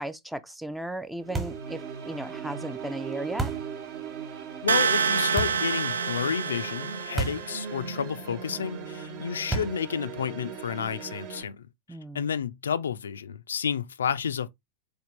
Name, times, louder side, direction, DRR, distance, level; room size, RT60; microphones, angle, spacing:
voice 1, 0.0-3.5 11.9-12.3, right 1 dB, 5° right, 0.4 m, -36 dB
sound 1, 1.2-11.4, right 6 dB, 45° right, 0.9 m, -39 dB
sound 2, 1.3-1.7 3.4-3.7 5.4-5.7 7.2-7.5 7.8-7.9 9.5-9.9, right 3 dB, 20° right, 1.2 m, -31 dB
voice 2, 4.6-11.7 12.1-14.5, left 7 dB, 70° left, 0.3 m, -31 dB
sound 3, 4.7-7.6, right 6 dB, 70° right, 0.3 m, -27 dB
4.1 x 3.5 x 3.0 m
figure-of-eight pair, 90°, 0 cm